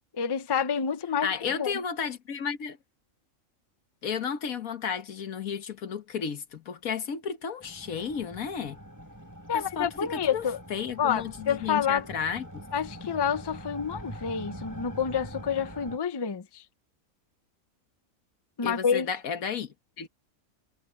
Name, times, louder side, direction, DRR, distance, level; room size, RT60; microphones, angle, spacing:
voice 1, 0.1-1.7 9.5-10.6 11.0-12.1 12.7-16.6 18.6-19.1, left 7 dB, 25° left, 0.5 m, -28 dB
voice 2, 1.2-2.8 4.0-8.8 9.5-10.4 10.7-12.6 18.6-20.1, left 7 dB, 80° left, 1.6 m, -33 dB
sound 1, 7.6-16.0, equal, 10° right, 5.7 m, -44 dB
omnidirectional pair, 1.5 m